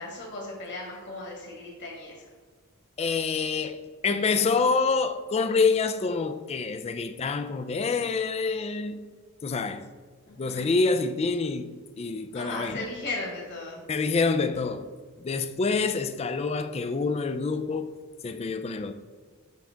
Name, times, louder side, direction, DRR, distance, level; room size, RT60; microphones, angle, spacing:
voice 1, 0.0-2.1 10.2-10.7 12.3-13.8, left 2 dB, 55° left, 1.8 m, -36 dB
voice 2, 3.0-9.0 9.4-9.9 10.4-12.8 13.9-14.9 15.2-18.0 18.2-18.9, left 4 dB, 30° left, 0.3 m, -27 dB
9.3 x 3.4 x 3.7 m
head